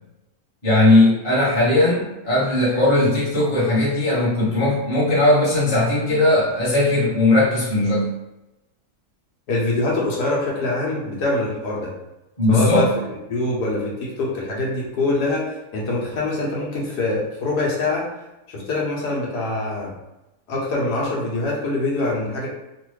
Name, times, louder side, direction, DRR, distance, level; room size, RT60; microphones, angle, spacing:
voice 1, 0.6-8.1 12.4-12.9, left 2 dB, 25° left, -9 dB, 0.9 m, -18 dB
voice 2, 9.5-11.9 12.5-12.9 13.3-18.1 18.5-19.9 20.5-22.5, left 2 dB, 85° left, -4 dB, 1.5 m, -24 dB
3.1 x 2.5 x 3.1 m, 0.96 s
omnidirectional pair, 1.7 m